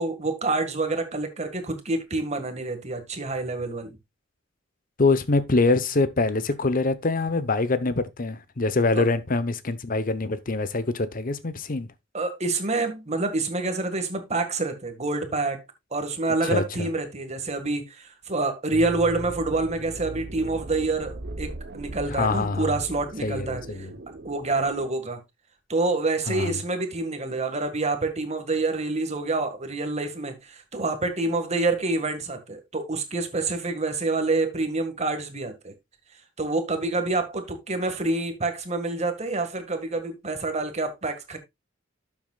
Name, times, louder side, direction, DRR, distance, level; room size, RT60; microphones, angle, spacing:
voice 1, 0.0-4.0 8.9-9.1 12.1-15.6 15.9-23.9 24.2-25.2 25.7-35.7 36.4-41.4, right 3 dB, 35° right, 1.8 m, -27 dB
voice 2, 5.0-11.9 16.4-16.9 22.1-22.8 23.2-23.9 26.3-26.5, left 3 dB, 45° left, 0.9 m, -24 dB
sound 1, 18.7-24.9, right 1 dB, 55° right, 0.9 m, -39 dB
12.0 x 7.2 x 2.4 m
head